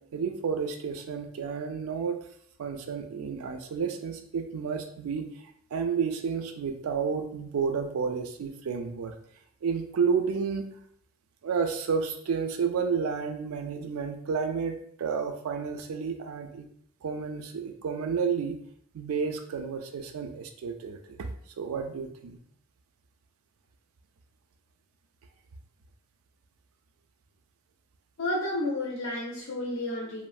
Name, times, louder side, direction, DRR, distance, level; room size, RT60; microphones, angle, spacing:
voice 1, 0.1-2.2 2.6-5.3 5.7-9.1 9.6-10.7 11.4-16.7 17.0-18.6 18.9-21.3 21.6-22.4, right 6 dB, 90° right, 6 dB, 0.4 m, -31 dB
voice 2, 28.2-30.3, left 1 dB, 75° left, -2 dB, 0.5 m, -31 dB
3.1 x 2.0 x 2.4 m, 0.66 s
head